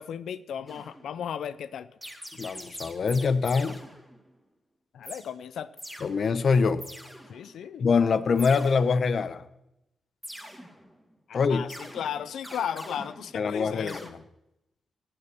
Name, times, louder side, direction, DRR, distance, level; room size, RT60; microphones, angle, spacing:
voice 1, 0.0-1.9 4.9-5.7 7.3-7.8 11.3-14.1, left 8 dB, 80° left, 15 dB, 0.5 m, -35 dB
sound 1, 0.7-1.2 2.0-4.3 5.0-5.3 5.8-6.1 6.8-7.6 8.4-9.2 10.2-11.1 11.7-13.6 13.9-14.1, equal, ahead, 2.4 m, -44 dB
voice 2, 2.4-3.8 6.0-6.8 7.8-9.4 11.3-11.6 13.3-14.2, left 5 dB, 60° left, 14 dB, 0.9 m, -24 dB
17.5 x 6.9 x 7.0 m, 0.86 s
cardioid pair, 70°, 0 cm